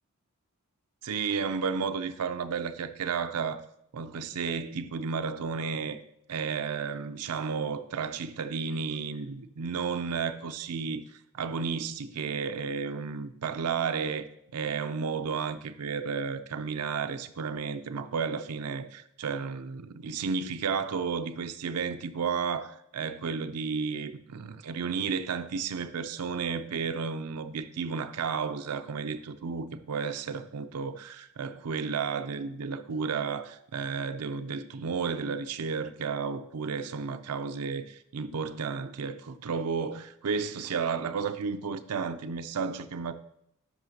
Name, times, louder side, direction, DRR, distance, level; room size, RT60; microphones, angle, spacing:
voice 1, 1.0-3.6 3.9-6.0 6.3-11.0 11.3-14.2 14.5-43.1, right 5 dB, 85° right, 0.5 m, -32 dB
10.5 x 5.6 x 2.8 m
head